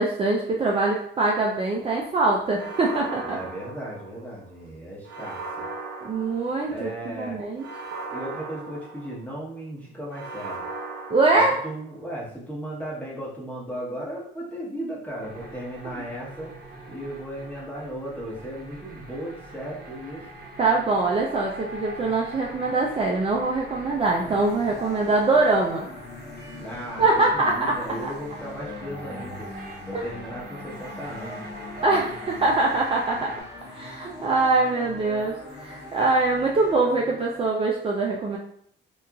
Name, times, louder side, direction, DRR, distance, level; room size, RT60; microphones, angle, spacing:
voice 1, 0.0-3.4 6.0-7.6 11.1-11.6 20.6-25.9 27.0-28.1 29.9-30.1 31.8-33.3 33.7-38.4, right 3 dB, 30° right, -3 dB, 0.4 m, -23 dB
sound 1, 2.5-4.4 5.1-6.9 7.6-9.5 10.1-12.0, right 3 dB, 85° right, 0.6 m, -37 dB
voice 2, 3.2-5.7 6.7-7.4 8.1-10.6 11.6-16.5 16.9-20.2 26.5-29.5 29.8-31.4, equal, 10° left, -5 dB, 1.0 m, -36 dB
sound 2, 15.2-33.4, right 1 dB, 55° right, 0.8 m, -43 dB
sound 3, 24.0-37.5, left 2 dB, 55° left, 0.7 m, -41 dB
2.8 x 2.3 x 2.4 m, 0.65 s
cardioid pair, 90°, 20 cm